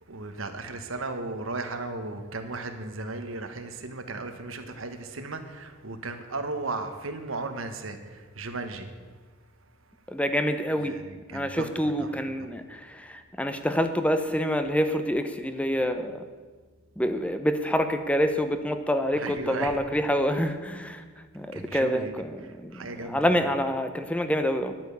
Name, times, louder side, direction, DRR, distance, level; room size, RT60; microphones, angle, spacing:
voice 1, 0.1-8.9 10.8-12.1 12.4-12.5 19.1-20.0 21.5-22.2 22.7-23.5, right 3 dB, 85° right, 7 dB, 1.4 m, -36 dB
voice 2, 10.1-11.0 11.3-16.2 17.0-21.0 21.3-24.7, equal, 5° left, 8 dB, 0.7 m, -27 dB
11.0 x 9.0 x 8.1 m, 1.5 s
head